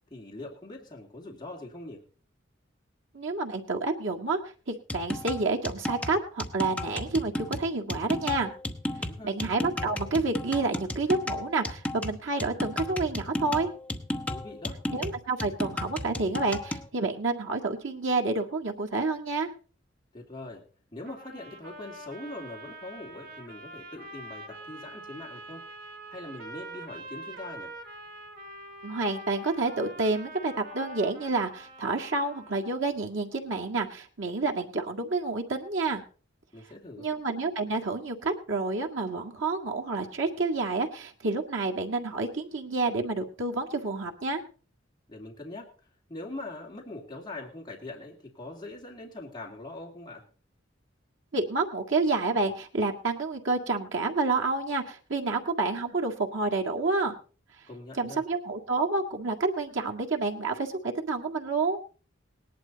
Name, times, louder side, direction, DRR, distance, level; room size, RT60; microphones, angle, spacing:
voice 1, 0.1-2.0 9.0-9.3 14.3-14.8 20.1-20.6 20.9-25.7 26.1-27.7 36.5-37.1 45.1-45.7 46.1-50.3 57.7-58.2, left 2 dB, 20° left, -1 dB, 2.7 m, -42 dB
voice 2, 3.1-4.4 4.7-8.5 9.2-13.7 14.9-19.5 28.8-36.0 37.0-44.4 51.3-57.2 57.9-61.8, right 3 dB, 85° right, 1 dB, 2.0 m, -29 dB
sound 1, 4.9-16.9, left 1 dB, 5° left, 0.9 m, -34 dB
sound 2, 21.1-32.7, right 1 dB, 50° right, 2.2 m, -45 dB
18.5 x 11.5 x 4.1 m, 0.38 s
head